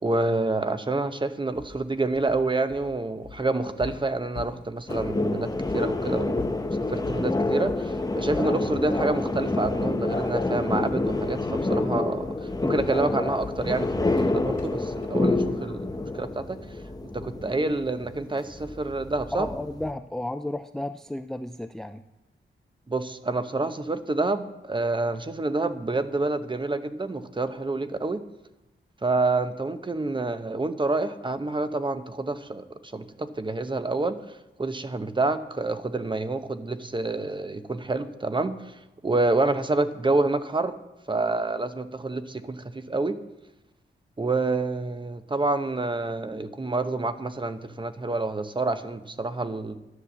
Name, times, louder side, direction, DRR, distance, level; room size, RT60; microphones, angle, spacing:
voice 1, 0.0-6.5 6.9-16.6 17.1-19.5 22.9-28.2 29.0-34.2 34.6-38.8 39.0-40.7 41.1-43.2 44.2-49.8, right 2 dB, 25° right, 10 dB, 0.8 m, -28 dB
sound 1, 1.5-5.2 5.7-5.8 6.3-7.3 7.7-8.0 8.3-8.6 9.0-9.2 9.6-10.6 10.9-11.2 11.6-11.9 12.2-16.2, left 4 dB, 40° left, 2.6 m, -43 dB
sound 2, 4.9-19.9, left 2 dB, 20° left, 0.8 m, -28 dB
voice 2, 19.3-22.0, left 1 dB, ahead, 10 dB, 0.4 m, -33 dB
11.0 x 9.8 x 7.3 m, 0.98 s
wide cardioid pair, 105°, 21 cm